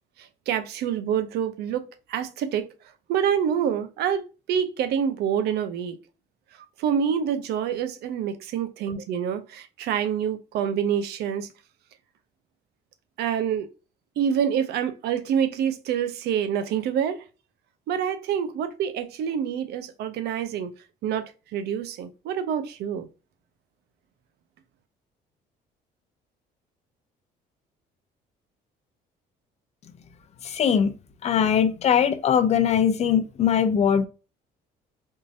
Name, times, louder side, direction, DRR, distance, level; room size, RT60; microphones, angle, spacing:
voice 1, 0.2-2.7 3.1-6.0 6.8-11.5 13.2-13.7 14.2-17.2 17.9-20.7 21.0-23.1, right 8 dB, 75° right, 0.6 m, -27 dB
voice 2, 30.4-30.9 31.2-34.1, left 8 dB, 40° left, 0.5 m, -21 dB
3.6 x 2.6 x 2.5 m
cardioid pair, 110°, 17 cm